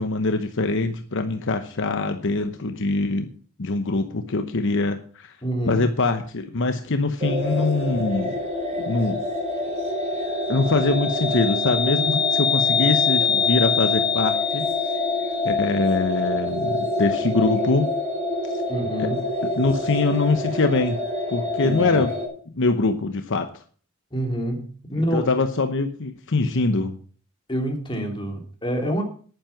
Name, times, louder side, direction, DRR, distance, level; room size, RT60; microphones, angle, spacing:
voice 1, 0.0-3.3 3.6-5.3 5.7-8.4 8.8-9.2 10.5-14.7 15.4-17.9 18.5-18.6 19.0-19.1 19.5-21.0 21.3-22.1 22.5-23.6 24.9-27.0, left 3 dB, 60° left, 7 dB, 0.9 m, -23 dB
voice 2, 5.4-5.8 18.7-19.3 21.6-22.0 24.1-25.3 27.5-29.0, equal, 20° left, 2 dB, 3.0 m, -27 dB
sound 1, 7.2-22.3, left 3 dB, 30° right, 4.4 m, -25 dB
10.5 x 9.8 x 5.9 m, 0.43 s
head